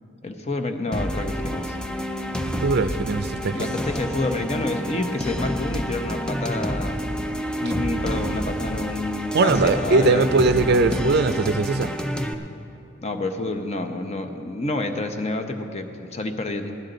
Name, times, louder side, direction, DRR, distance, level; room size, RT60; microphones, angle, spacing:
voice 1, 0.2-1.8 3.5-7.0 7.6-10.3 13.0-16.8, left 2 dB, 35° left, 6 dB, 0.8 m, -28 dB
sound 1, 0.9-12.3, equal, 5° left, 0.5 m, -29 dB
voice 2, 2.6-3.6 9.3-11.9, right 3 dB, 55° right, 11 dB, 0.5 m, -20 dB
16.5 x 12.0 x 3.9 m, 2.7 s
head